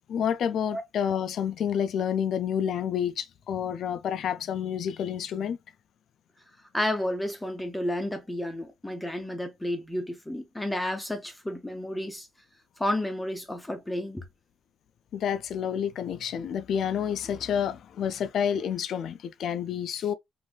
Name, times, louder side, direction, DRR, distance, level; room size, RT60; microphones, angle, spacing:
voice 1, 0.1-5.6 15.1-20.1, left 8 dB, 65° left, 0.4 m, -29 dB
voice 2, 6.7-12.3 12.8-14.2, left 1 dB, 10° left, 0.7 m, -31 dB
3.1 x 2.6 x 2.3 m
cardioid pair, 90°, 0 cm